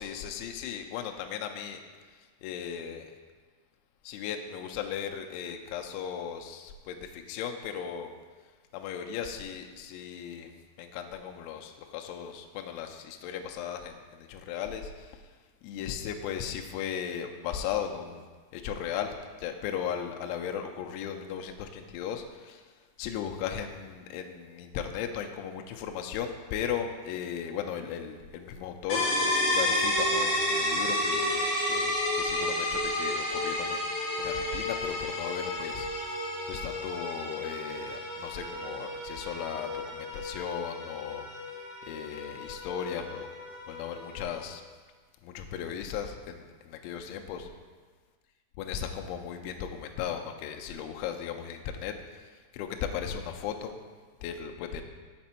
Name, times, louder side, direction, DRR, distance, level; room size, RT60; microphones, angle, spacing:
voice 1, 0.0-1.8 2.4-3.1 4.0-8.1 8.7-10.5 10.8-15.2 15.6-18.3 18.5-22.7 23.0-29.0 29.5-33.9 34.2-36.2 36.5-41.3 41.8-43.3 43.7-44.6 45.2-47.5 48.6-53.8 54.2-54.8, left 8 dB, 85° left, 4 dB, 2.7 m, -36 dB
sound 1, 28.9-44.5, left 1 dB, 60° left, 2.0 m, -31 dB
6.8 x 6.2 x 4.3 m, 1.4 s
omnidirectional pair, 5.8 m